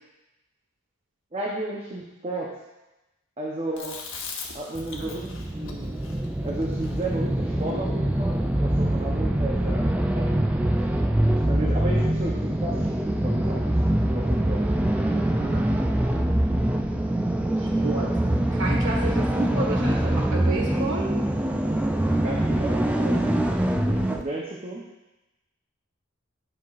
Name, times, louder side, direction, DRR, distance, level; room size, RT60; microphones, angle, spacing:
voice 1, 1.3-2.5 3.4-4.0 4.5-6.1 6.4-10.7 11.5-13.7 14.1-14.6 22.2-23.4 23.8-24.8, right 2 dB, 30° right, -3 dB, 0.8 m, -33 dB
Chewing mastication, 3.8-8.2, left 4 dB, 65° left, 1.0 m, -40 dB
sound 1, 4.7-24.2, right 1 dB, 5° right, 0.3 m, -24 dB
voice 2, 14.9-15.7 17.6-18.2 18.5-21.1, right 3 dB, 65° right, -1 dB, 1.6 m, -31 dB
10.0 x 5.9 x 2.5 m, 1.0 s
head